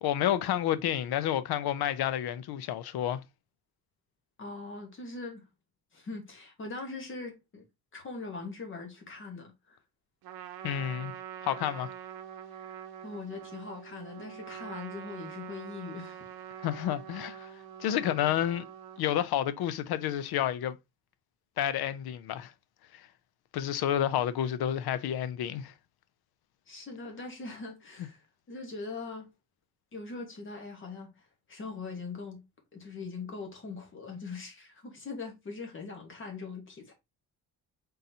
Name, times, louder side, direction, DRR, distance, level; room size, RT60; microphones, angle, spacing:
voice 1, 0.0-3.2 10.6-11.1 11.4-11.9 16.6-17.5 17.8-18.6 19.0-20.8 21.6-22.5 22.9-23.1 23.5-25.7, left 11 dB, 85° left, 0.6 m, -30 dB
voice 2, 4.4-5.4 5.9-7.6 7.9-9.8 12.6-16.3 26.7-29.3 29.9-31.1 31.5-32.4 32.7-36.9, left 3 dB, 35° left, 1.2 m, -41 dB
Trumpet, 10.2-19.0, right 10 dB, 75° right, 0.7 m, -45 dB
4.1 x 3.8 x 2.7 m
wide cardioid pair, 175°, 37 cm